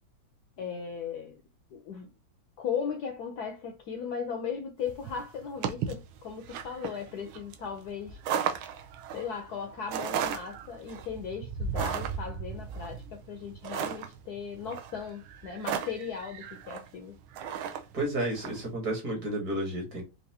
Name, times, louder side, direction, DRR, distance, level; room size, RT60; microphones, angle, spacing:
voice 1, 0.6-1.4 1.7-2.1 2.6-8.2 9.1-17.2, left 6 dB, 70° left, 1.0 m, -37 dB
sound 1, 4.9-18.6, right 7 dB, 85° right, 1.4 m, -36 dB
voice 2, 17.9-20.0, right 1 dB, 50° right, 1.8 m, -31 dB
4.6 x 2.5 x 2.7 m
omnidirectional pair, 2.1 m